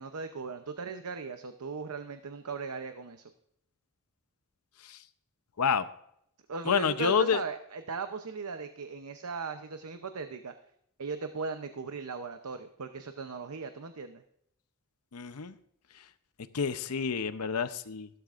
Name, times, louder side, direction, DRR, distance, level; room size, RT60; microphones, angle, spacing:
voice 1, 0.0-3.2 6.5-10.5 11.0-14.2, right 4 dB, 85° right, 8 dB, 0.7 m, -38 dB
voice 2, 6.7-7.4 15.1-15.5 16.5-18.1, left 6 dB, 90° left, 12 dB, 0.7 m, -28 dB
15.0 x 12.5 x 2.5 m, 0.71 s
head